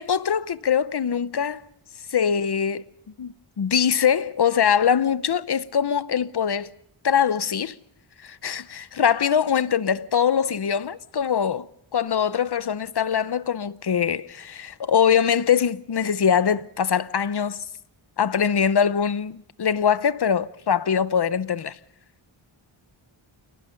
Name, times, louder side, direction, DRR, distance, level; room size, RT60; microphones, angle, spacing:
voice 1, 0.0-1.6 2.1-2.8 3.2-6.7 7.0-7.8 8.2-11.7 11.9-17.6 18.2-21.8, left 7 dB, 50° left, 0.8 m, -22 dB
28.5 x 18.5 x 5.2 m
wide cardioid pair, 90°, 50 cm